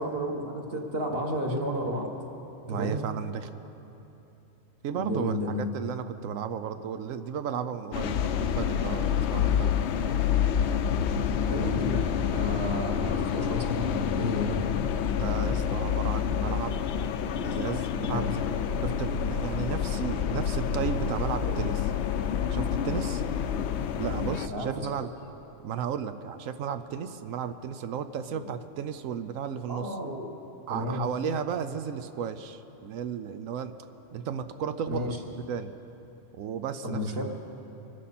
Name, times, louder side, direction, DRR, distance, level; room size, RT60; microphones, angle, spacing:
voice 1, 0.0-2.1 2.6-3.0 4.9-5.7 11.3-14.7 18.1-18.3 21.4-21.6 24.5-24.7 28.3-28.5 29.7-30.3 30.7-31.1 34.9-35.2 36.8-37.2, equal, 50° right, 1 dB, 1.7 m, -32 dB
voice 2, 2.7-3.5 4.8-9.8 15.2-16.8 17.4-18.4 18.8-21.7 22.5-23.2 24.0-25.1 25.6-30.0 30.7-33.7 34.1-35.1 35.5-35.7 36.3-37.0, right 7 dB, 85° right, 10 dB, 1.1 m, -34 dB
sound 1, 7.9-24.5, left 8 dB, 65° left, 0.8 m, -28 dB
24.5 x 13.0 x 4.2 m, 3.0 s
omnidirectional pair, 1.3 m